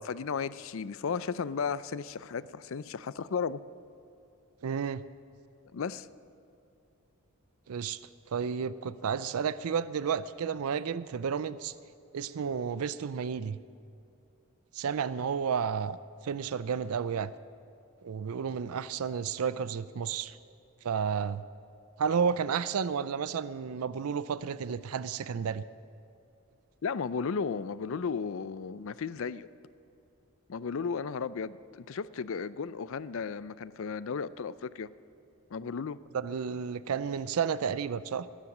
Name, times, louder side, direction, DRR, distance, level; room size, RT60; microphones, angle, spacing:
voice 1, 0.0-3.6 5.7-6.1 26.8-29.5 30.5-34.9 35.5-36.0, left 5 dB, 65° left, 16 dB, 0.4 m, -34 dB
voice 2, 4.6-5.0 7.7-8.0 8.3-11.7 12.1-13.6 14.7-16.0 16.2-17.3 18.0-20.4 20.8-21.4 22.0-25.6 36.1-38.3, right 6 dB, 80° right, 16 dB, 0.4 m, -31 dB
20.0 x 9.9 x 6.1 m, 2.7 s
head